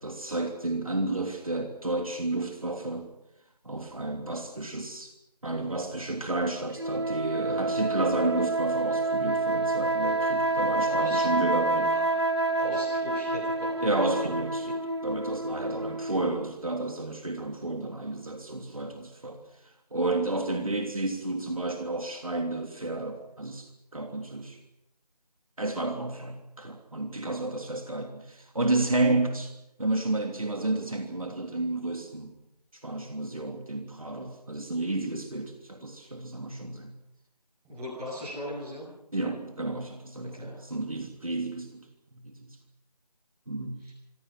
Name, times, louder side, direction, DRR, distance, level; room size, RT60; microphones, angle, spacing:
voice 1, 0.0-3.1 3.6-5.1 5.4-12.0 13.8-14.7 15.0-19.4 19.9-24.6 25.6-29.5 29.8-32.3 32.7-36.9 39.1-41.8 42.1-42.6 43.5-43.8, right 2 dB, 55° right, 4 dB, 3.1 m, -31 dB
sound 1, 6.8-16.5, right 2 dB, 40° right, 2.0 m, -28 dB
voice 2, 10.8-11.2 11.9-12.0 12.5-13.8 37.6-38.8 40.3-40.5 43.8-43.9, equal, ahead, -15 dB, 8.0 m, -38 dB
26.0 x 25.0 x 6.1 m, 0.86 s
figure-of-eight pair, 180°, 21 cm